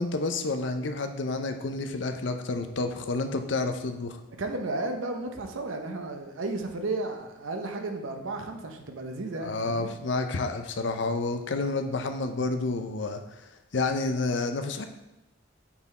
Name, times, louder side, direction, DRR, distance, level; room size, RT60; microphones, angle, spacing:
voice 1, 0.0-4.2 9.4-13.2 13.7-14.9, left 3 dB, 65° left, 7 dB, 0.5 m, -29 dB
voice 2, 4.4-9.9, right 2 dB, 85° right, 5 dB, 0.8 m, -33 dB
5.9 x 4.0 x 4.2 m, 1.0 s
head